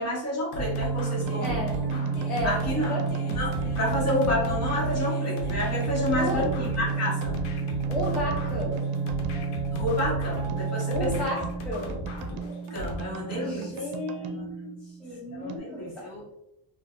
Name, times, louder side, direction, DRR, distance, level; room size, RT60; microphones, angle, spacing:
voice 1, 0.0-1.6 2.4-2.9 3.3-7.3 9.7-11.1 12.7-13.7 14.3-14.4 15.3-16.2, left 1 dB, 30° left, -5 dB, 1.2 m, -30 dB
sound 1, 0.5-13.0, equal, 75° left, 0.8 m, -37 dB
sound 2, 0.6-11.2, right 5 dB, 55° right, 0.8 m, -30 dB
sound 3, 1.1-15.6, right 5 dB, 80° right, 0.5 m, -39 dB
voice 2, 1.4-1.8 2.3-3.1 6.1-6.5 7.9-8.8 10.9-12.1 13.4-16.1, left 1 dB, 5° left, -7 dB, 0.5 m, -33 dB
2.6 x 2.4 x 2.5 m, 0.84 s
cardioid pair, 130°, 49 cm